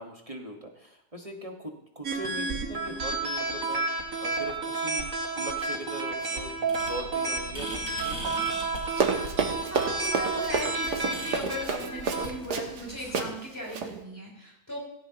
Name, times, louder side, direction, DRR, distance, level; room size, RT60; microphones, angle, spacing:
voice 1, 0.0-8.5, right 1 dB, 25° right, 1 dB, 1.4 m, -41 dB
sound 1, 2.0-12.3, right 3 dB, 60° right, 2.2 m, -31 dB
sound 2, 6.7-13.1, equal, 65° left, 5.0 m, -43 dB
Run, 8.9-12.8 13.1-13.3 13.7-13.9, right 5 dB, 90° right, 1.9 m, -29 dB
voice 2, 9.7-14.8, equal, 10° left, -4 dB, 5.0 m, -37 dB
17.5 x 16.0 x 2.9 m, 0.76 s
omnidirectional pair, 1.7 m